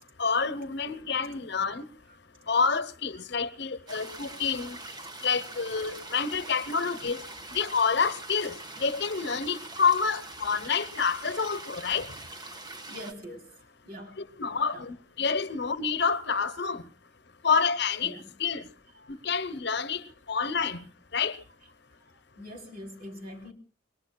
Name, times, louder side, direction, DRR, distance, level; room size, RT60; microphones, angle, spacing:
voice 1, 0.2-1.9 2.5-4.8 5.2-7.2 7.5-12.1 14.2-16.8 17.4-18.1 18.4-18.6 19.1-20.0 20.3-20.8 21.1-21.4, left 5 dB, 60° left, 0.9 m, -28 dB
sound 1, 3.9-13.1, right 2 dB, 20° right, 1.3 m, -43 dB
voice 2, 12.9-13.5 13.8-14.2 14.7-14.9 17.5-17.6 18.0-18.3 19.0-19.1 19.5-19.6 22.0-22.1 22.4-23.5, equal, 50° right, 3.4 m, -44 dB
28.0 x 22.0 x 2.3 m
head